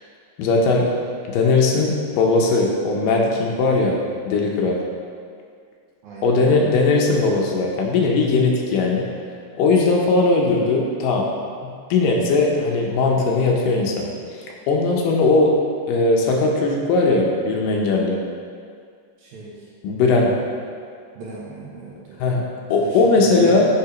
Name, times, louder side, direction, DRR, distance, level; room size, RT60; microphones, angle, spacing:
voice 1, 0.4-0.9 1.3-4.0 4.3-4.8 6.2-9.1 9.6-11.3 11.6-14.1 14.7-15.5 15.9-18.2 19.8-20.3 22.2-23.7, left 3 dB, 75° left, -1 dB, 2.3 m, -19 dB
voice 2, 6.0-6.7 19.2-19.7 20.1-20.5 21.1-22.3 22.8-23.7, right 3 dB, 70° right, -5 dB, 2.1 m, -36 dB
8.5 x 3.8 x 4.9 m, 2.2 s
omnidirectional pair, 4.1 m